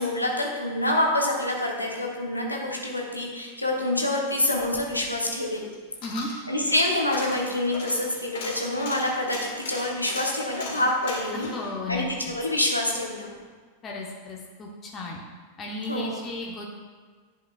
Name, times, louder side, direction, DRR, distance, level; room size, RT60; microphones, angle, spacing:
voice 1, 0.0-5.7 6.5-11.5 11.9-13.3 15.9-16.2, left 1 dB, 85° left, -1 dB, 1.0 m, -26 dB
Coin (dropping), 4.5-12.9 13.3-13.4, left 3 dB, 50° left, 1.7 m, -39 dB
voice 2, 11.3-12.3 13.8-15.2 15.6-16.6, left 2 dB, 25° left, -2 dB, 0.9 m, -34 dB
10.5 x 5.0 x 2.4 m, 1.5 s
figure-of-eight pair, 90°, 0 cm